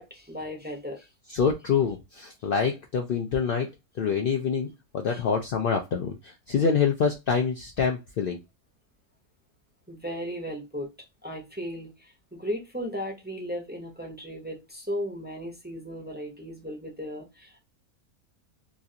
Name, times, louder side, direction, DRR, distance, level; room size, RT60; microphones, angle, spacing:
voice 1, 0.0-1.4 5.1-5.2 9.9-10.9 11.2-17.6, equal, 10° right, 0.5 m, -36 dB
voice 2, 1.3-3.7 4.0-8.4, left 6 dB, 80° left, 0.5 m, -26 dB
3.0 x 2.4 x 2.7 m
omnidirectional pair, 1.5 m